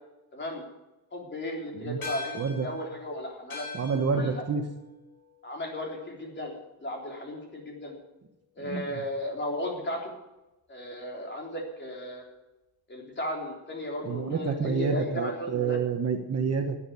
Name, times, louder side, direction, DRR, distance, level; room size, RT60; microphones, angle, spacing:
voice 1, 0.3-0.7 1.1-3.7 4.1-4.4 5.4-6.5 6.8-7.9 8.6-10.1 10.7-12.2 12.9-15.8, left 1 dB, 30° left, 0 dB, 3.7 m, -35 dB
sound 1, 2.0-6.7, left 4 dB, 60° left, 3.7 m, -44 dB
voice 2, 2.3-2.7 3.7-4.6 8.6-8.8 14.0-16.8, right 5 dB, 40° right, 5 dB, 1.2 m, -28 dB
12.0 x 9.0 x 8.5 m, 0.99 s
wide cardioid pair, 155°, 39 cm